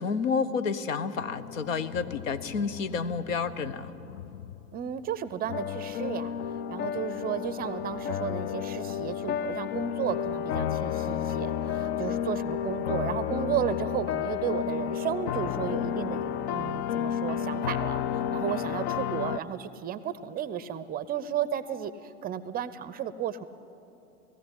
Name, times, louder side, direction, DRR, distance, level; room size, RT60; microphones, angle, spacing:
voice 1, 0.0-3.9, left 5 dB, 65° left, 13 dB, 1.1 m, -30 dB
sound 1, 1.2-5.1 5.5-19.4, left 9 dB, 50° left, 0.7 m, -32 dB
voice 2, 4.7-6.3 6.7-23.4, right 9 dB, 20° right, 15 dB, 0.6 m, -33 dB
18.5 x 14.5 x 9.9 m, 2.8 s
figure-of-eight pair, 90°, 41 cm